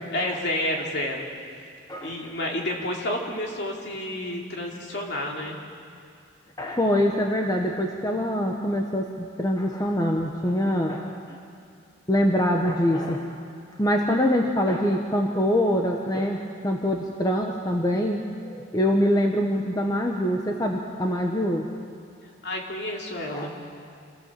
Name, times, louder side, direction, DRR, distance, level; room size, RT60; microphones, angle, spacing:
voice 1, 0.1-1.2 2.0-5.6 22.4-23.5, left 1 dB, 55° left, -1 dB, 3.2 m, -30 dB
voice 2, 1.9-2.3 6.6-11.4 12.1-13.3 13.8-21.7 23.3-23.5, equal, 20° left, 1 dB, 1.1 m, -24 dB
27.0 x 16.0 x 7.6 m, 2.4 s
head